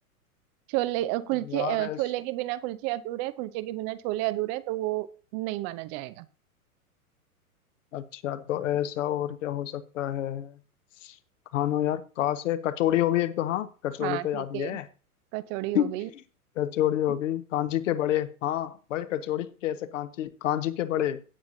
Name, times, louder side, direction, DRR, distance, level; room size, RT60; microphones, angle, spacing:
voice 1, 0.7-6.3 14.0-14.8 15.3-16.1, right 17 dB, 30° right, 0.7 m, -31 dB
voice 2, 1.5-2.0 7.9-10.5 11.0-11.1 11.5-14.9 15.7-16.2 16.6-21.2, left 12 dB, 55° left, 1.3 m, -28 dB
17.5 x 7.3 x 2.7 m
figure-of-eight pair, 105°, 45 cm